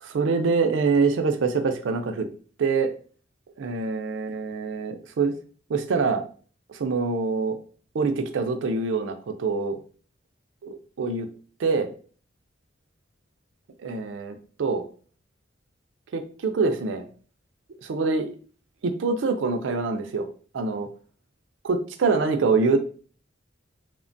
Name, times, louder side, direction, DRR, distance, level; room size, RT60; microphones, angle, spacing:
voice 1, 0.0-2.3 2.6-2.9 3.6-5.3 5.7-6.2 6.7-7.6 7.9-9.8 10.6-11.3 11.6-11.9 13.8-14.8 16.1-17.1 17.8-18.3 18.8-20.3 20.5-20.9 21.6-22.9, right 4 dB, 75° right, 7 dB, 0.4 m, -25 dB
3.2 x 2.1 x 2.5 m, 0.41 s
head